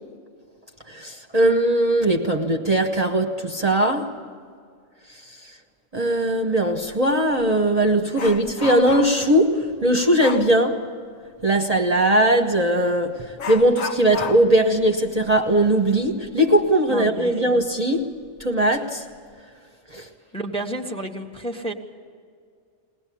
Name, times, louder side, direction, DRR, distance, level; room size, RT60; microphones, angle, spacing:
voice 1, 0.9-4.2 5.1-5.5 5.9-10.9 11.4-19.0 19.9-20.1, right 1 dB, 30° right, 1.3 m, -20 dB
Dog, 6.8-7.0 7.4-9.3 10.2-10.5 12.5-12.7 13.4-16.7 17.0-17.1 17.6-17.7 18.4-18.8 19.1-19.4, left 5 dB, 75° left, 1.5 m, -34 dB
voice 2, 16.9-17.6 20.3-21.7, right 1 dB, 5° left, 1.5 m, -31 dB
22.0 x 19.0 x 8.6 m
omnidirectional pair, 1.4 m